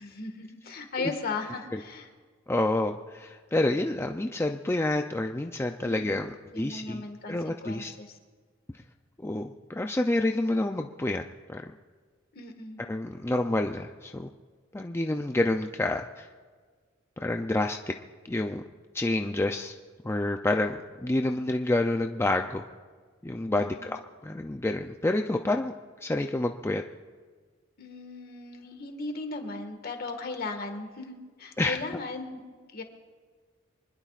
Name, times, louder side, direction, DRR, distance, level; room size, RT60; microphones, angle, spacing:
voice 1, 0.0-2.1 5.8-8.2 12.3-12.8 23.5-23.9 27.8-32.8, left 3 dB, 50° left, 4 dB, 1.8 m, -37 dB
voice 2, 2.5-7.9 9.2-11.2 11.5-11.6 12.9-14.3 14.7-16.3 17.2-17.9 18.3-18.6 18.9-19.8 20.0-22.6 23.2-25.7 26.0-26.8 31.6-31.8, left 2 dB, 15° left, 4 dB, 0.4 m, -28 dB
24.5 x 20.5 x 2.5 m, 1.5 s
head